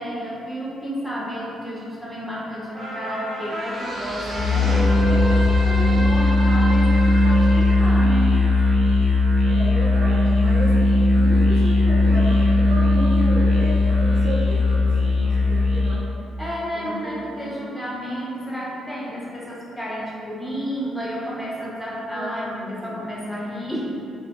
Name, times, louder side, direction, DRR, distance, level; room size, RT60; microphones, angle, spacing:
voice 1, 0.0-8.4 16.4-23.9, equal, 10° left, -6 dB, 0.6 m, -31 dB
sound 1, 2.7-9.4 9.8-9.9, right 1 dB, 30° right, 0.8 m, -30 dB
Musical instrument, 4.3-16.1, left 2 dB, 65° left, 0.5 m, -18 dB
voice 2, 9.5-10.7 11.0-16.0 16.7-17.6 22.1-23.0, equal, 75° right, -5 dB, 0.6 m, -32 dB
3.1 x 2.1 x 2.2 m, 2.6 s
cardioid pair, 90°, 0 cm